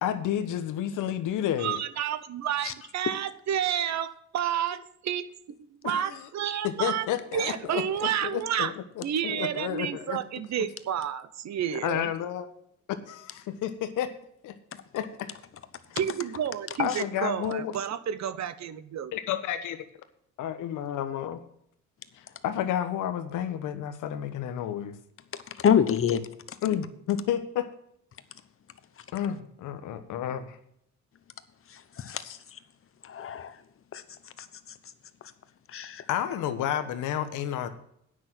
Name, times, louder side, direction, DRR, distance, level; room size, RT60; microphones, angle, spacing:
voice 1, 0.0-1.8 4.7-4.8 5.8-6.3 6.6-10.2 10.6-10.7 11.7-12.5 13.1-14.1 14.4-14.5 14.9-15.3 15.9-16.0 16.8-17.7 19.1-19.8 20.4-21.4 22.1-24.9 26.6-27.7 29.1-30.6 32.2-32.4 36.1-37.7, left 10 dB, 85° left, 10 dB, 1.1 m, -31 dB
voice 2, 1.6-5.6 5.8-7.1 7.3-8.7 9.0-12.1 16.0-19.1, right 9 dB, 65° right, 15 dB, 0.9 m, -30 dB
voice 3, 25.3-26.3 32.0-32.2 33.0-33.5 33.9-34.0 35.7-36.0, left 8 dB, 45° left, 13 dB, 1.0 m, -25 dB
9.5 x 6.2 x 7.9 m, 0.71 s
cardioid pair, 90°, 30 cm